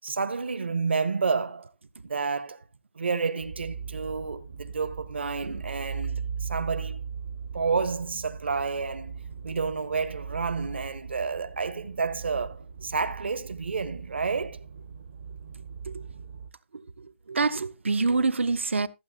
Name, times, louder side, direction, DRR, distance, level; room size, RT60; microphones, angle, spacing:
voice 1, 0.0-1.7 2.0-2.6 2.9-7.0 7.5-14.6, right 5 dB, 65° right, 1.2 m, -30 dB
sound 1, 3.4-16.5, right 6 dB, 25° right, 0.5 m, -39 dB
voice 2, 16.7-18.9, right 4 dB, 80° right, 0.9 m, -27 dB
14.5 x 9.0 x 2.8 m
hypercardioid pair, 180°, 7 cm